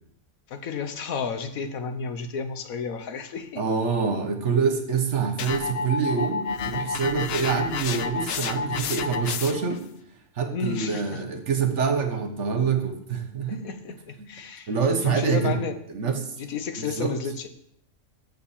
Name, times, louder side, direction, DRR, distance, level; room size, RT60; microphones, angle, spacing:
voice 1, 0.5-3.6 10.5-11.2 13.5-14.7 15.0-15.7 16.4-17.5, left 5 dB, 80° left, 9 dB, 1.3 m, -32 dB
voice 2, 3.6-9.8 10.4-13.7 14.2-14.3 14.7-15.6 15.9-16.3 16.8-17.1, right 5 dB, 55° right, 6 dB, 1.4 m, -26 dB
sound 1, 5.4-9.8, left 6 dB, 60° left, 0.7 m, -30 dB
7.1 x 6.6 x 7.2 m, 0.71 s
omnidirectional pair, 1.5 m